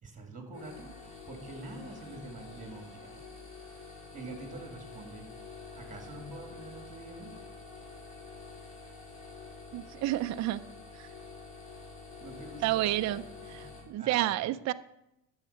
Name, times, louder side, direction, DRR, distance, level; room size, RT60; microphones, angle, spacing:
voice 1, 0.0-0.9 1.3-3.2 4.1-5.3 5.7-7.3 12.2-13.1 13.5-14.5, right 2 dB, 15° right, 4 dB, 2.5 m, -45 dB
sound 1, 0.5-13.8, left 4 dB, 65° left, 5.0 m, -48 dB
voice 2, 9.7-10.6 10.9-11.1 12.6-13.2 13.9-14.7, right 15 dB, 40° right, 10 dB, 0.4 m, -29 dB
12.5 x 7.3 x 5.7 m, 0.86 s
cardioid pair, 135°, 44 cm